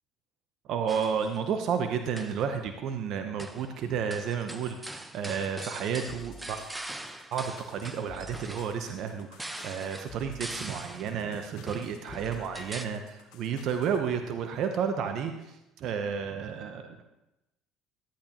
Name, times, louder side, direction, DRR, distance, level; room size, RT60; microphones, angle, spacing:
voice 1, 0.7-6.6 7.3-17.0, right 7 dB, 60° right, 6 dB, 0.8 m, -32 dB
sound 1, 0.9-1.4 2.0-2.5 3.4-3.7 4.1-11.2 11.7-12.9, right 1 dB, 10° right, 0.7 m, -42 dB
sound 2, 6.1-14.0, left 2 dB, 75° left, 1.4 m, -51 dB
13.0 x 8.6 x 2.9 m, 0.95 s
supercardioid pair, 85°, 0 cm